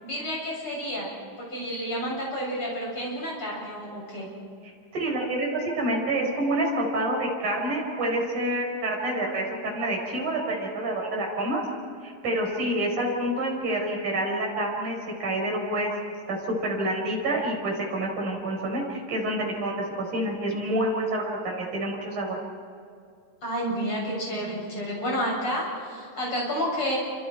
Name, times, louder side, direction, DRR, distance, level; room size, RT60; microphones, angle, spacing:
voice 1, 0.0-1.1 1.4-4.3 23.4-27.0, equal, 30° left, -3 dB, 8.6 m, -30 dB
voice 2, 4.9-11.6 12.0-22.4, right 1 dB, 50° right, -1 dB, 6.5 m, -28 dB
29.0 x 26.5 x 4.7 m, 2.3 s
omnidirectional pair, 4.7 m